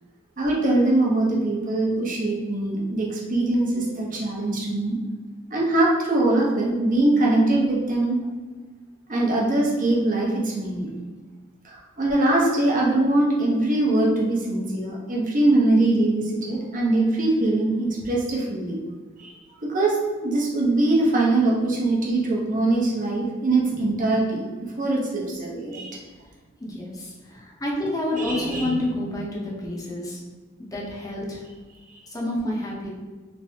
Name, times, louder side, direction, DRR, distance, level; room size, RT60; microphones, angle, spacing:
voice 1, 0.4-5.0 5.5-8.2 9.1-10.9 11.6-18.8 19.2-19.3 19.6-24.5 24.8-26.0 28.2-28.7 31.9-32.0, right 2 dB, 40° right, -3 dB, 0.8 m, -22 dB
voice 2, 26.6-30.2 30.7-31.4 32.1-32.9, left 1 dB, 20° left, -3 dB, 0.7 m, -29 dB
3.3 x 3.2 x 2.7 m, 1.3 s
head